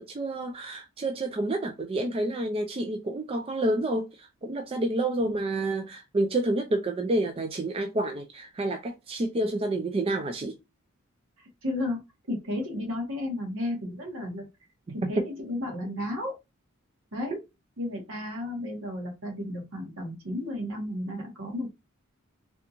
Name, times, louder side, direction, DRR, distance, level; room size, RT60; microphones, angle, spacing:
voice 1, 0.0-10.6 15.0-15.1, right 1 dB, 25° right, 0.4 m, -29 dB
voice 2, 11.4-12.0 12.3-14.4 14.9-16.3 17.1-17.4 17.8-21.7, left 1 dB, 65° right, 1.6 m, -33 dB
3.4 x 2.5 x 2.9 m
head